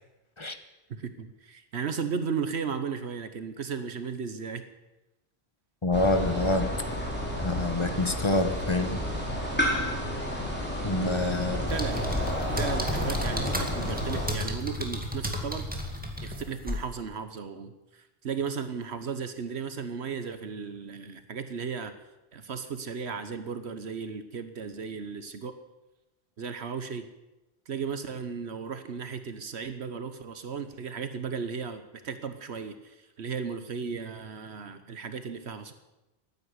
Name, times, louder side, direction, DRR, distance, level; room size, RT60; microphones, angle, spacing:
voice 1, 0.9-4.6 11.7-12.1 12.5-15.7 16.2-21.9 22.3-25.5 26.4-27.0 27.7-35.7, right 6 dB, 80° right, 9 dB, 1.3 m, -35 dB
voice 2, 5.8-6.7 7.4-9.0 10.8-11.8, left 2 dB, 25° left, 8 dB, 1.2 m, -27 dB
sound 1, 5.9-14.3, equal, 10° left, 3.6 m, -31 dB
sound 2, 11.7-16.9, equal, 10° right, 2.2 m, -33 dB
14.5 x 9.7 x 9.6 m, 1.0 s
omnidirectional pair, 1.1 m